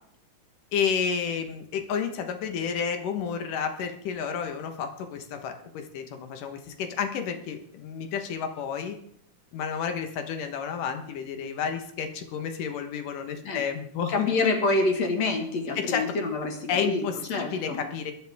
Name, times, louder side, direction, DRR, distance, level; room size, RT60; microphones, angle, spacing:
voice 1, 0.7-9.0 9.5-14.6 15.8-16.1 16.7-18.1, left 7 dB, 85° left, 6 dB, 2.9 m, -31 dB
voice 2, 14.1-17.0 17.3-17.8, left 3 dB, 55° left, 3 dB, 2.8 m, -27 dB
23.5 x 9.9 x 3.6 m, 0.65 s
omnidirectional pair, 3.7 m